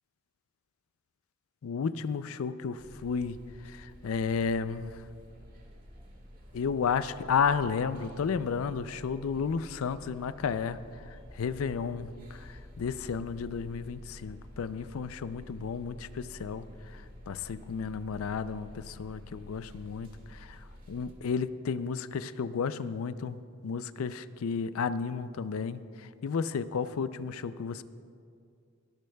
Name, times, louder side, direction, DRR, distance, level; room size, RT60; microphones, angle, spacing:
voice 1, 1.6-5.1 6.5-23.4 23.6-27.8, left 6 dB, 80° left, 14 dB, 0.4 m, -33 dB
sound 1, 2.8-21.1, equal, 40° right, 1.6 m, -50 dB
20.0 x 12.5 x 2.3 m, 2.3 s
head